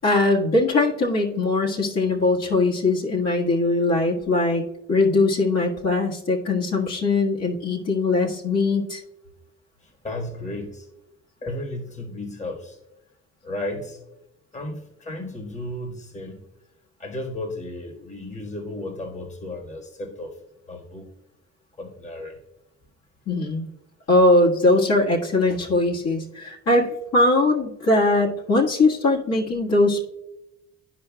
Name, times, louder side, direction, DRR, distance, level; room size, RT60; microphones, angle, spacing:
voice 1, 0.0-4.6 4.9-9.0 23.3-23.7 24.1-30.0, left 2 dB, 55° left, -4 dB, 1.7 m, -21 dB
voice 2, 9.8-10.9 11.4-12.8 13.4-14.0 14.5-16.4 17.0-20.4 20.7-21.1 21.8-22.4, left 1 dB, 25° left, 3 dB, 1.4 m, -34 dB
13.0 x 4.9 x 2.2 m, 0.89 s
cardioid pair, 90°, 30 cm